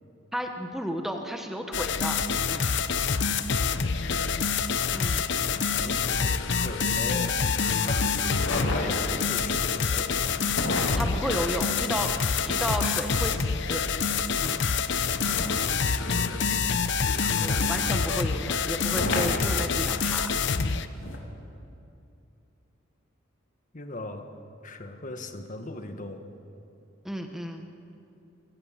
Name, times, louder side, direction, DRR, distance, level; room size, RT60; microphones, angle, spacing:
voice 1, 0.3-2.2 2.5-2.6 4.9-5.2 11.0-13.8 14.4-14.6 17.4-20.3 27.0-27.7, equal, ahead, 4 dB, 1.2 m, -33 dB
sound 1, 1.7-20.9, left 5 dB, 60° left, 0.8 m, -26 dB
voice 2, 3.7-4.5 5.8-7.4 7.8-8.1 8.5-10.4 15.8-16.9 23.7-24.3 24.6-26.2, left 2 dB, 40° left, 6 dB, 1.6 m, -39 dB
sound 2, 8.3-9.3 10.5-12.9 15.2-17.1 18.9-20.1 21.0-21.2, left 1 dB, 75° left, 3.1 m, -33 dB
28.0 x 17.5 x 7.5 m, 2.7 s
head